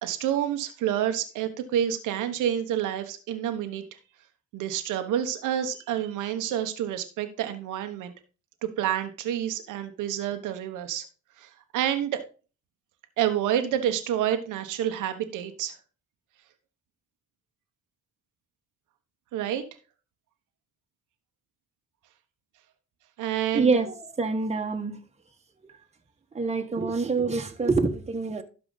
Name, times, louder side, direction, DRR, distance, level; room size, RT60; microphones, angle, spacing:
voice 1, 0.0-3.8 4.5-8.1 8.6-11.1 11.4-12.2 13.2-15.8 19.3-19.6 23.2-23.7, right 10 dB, 90° right, 1.1 m, -28 dB
voice 2, 23.5-25.0 25.6-25.7 26.3-28.4, right 4 dB, 20° right, 1.3 m, -26 dB
12.5 x 4.9 x 3.9 m
cardioid pair, 90°, 30 cm